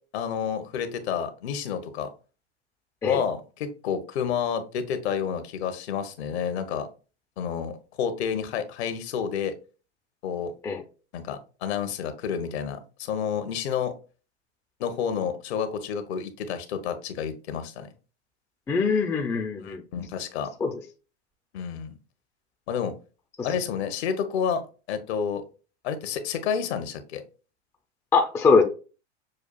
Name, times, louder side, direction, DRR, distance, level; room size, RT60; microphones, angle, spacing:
voice 1, 0.1-2.1 3.1-6.9 7.4-9.5 10.2-10.5 11.1-13.9 14.8-17.9 19.6-20.5 21.5-21.9 22.7-22.9 23.4-24.6 24.9-25.4 25.8-27.2, left 7 dB, 65° left, 0.8 m, -29 dB
voice 2, 18.7-19.8 20.6-20.7 23.4-23.5 28.1-28.6, left 4 dB, 10° left, 0.3 m, -22 dB
6.3 x 2.4 x 2.2 m
hypercardioid pair, 95°, 35 cm